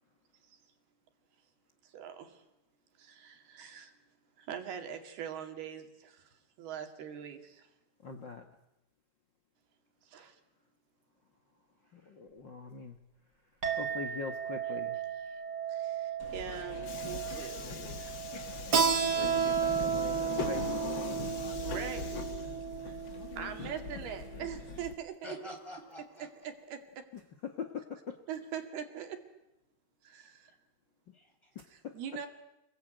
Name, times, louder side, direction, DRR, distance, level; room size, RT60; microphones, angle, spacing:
voice 1, 1.9-2.4 3.0-3.9 4.4-6.3 6.6-7.7 10.1-10.4 15.3-15.4 15.7-18.4 21.6-22.1 23.4-25.2 26.2-27.0 28.3-29.2 30.0-30.5 31.9-32.3, right 8 dB, 75° right, 6 dB, 4.2 m, -42 dB
voice 2, 8.0-8.4 11.9-13.0 13.7-15.0 19.1-20.6 24.0-24.2 27.4-28.2 31.5-32.2, left 5 dB, 85° left, 5 dB, 1.0 m, -42 dB
Chink clink, 13.6-22.3, right 9 dB, 25° right, 5.0 m, -40 dB
Subway metro underground, 16.2-24.9, left 6 dB, 60° left, 1.2 m, -41 dB
Keyboard (musical), 18.7-24.0, right 7 dB, 45° right, 1.3 m, -31 dB
voice 3, 22.1-22.8 25.2-26.3 31.1-31.5, equal, 5° left, 3 dB, 4.9 m, -47 dB
28.5 x 21.5 x 9.1 m, 0.90 s
omnidirectional pair, 4.6 m